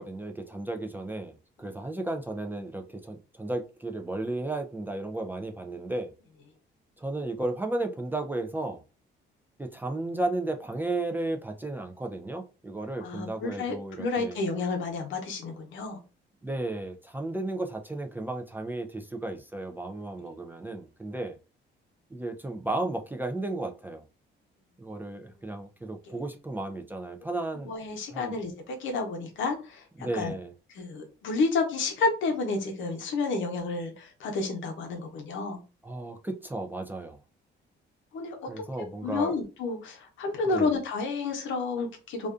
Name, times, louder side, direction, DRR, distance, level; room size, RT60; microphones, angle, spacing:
voice 1, 0.0-1.3 1.6-6.1 7.0-8.8 9.6-14.4 16.4-21.4 22.1-24.0 24.8-27.7 28.1-28.3 30.0-30.5 35.8-37.2 38.5-39.3 40.4-40.8, right 2 dB, 10° right, 0.3 m, -34 dB
voice 2, 13.0-16.0 26.1-26.2 27.6-29.8 30.1-30.3 30.7-35.6 38.1-38.4 39.0-42.3, left 3 dB, 75° left, 0.7 m, -30 dB
2.5 x 2.2 x 2.4 m
cardioid pair, 90°, 20 cm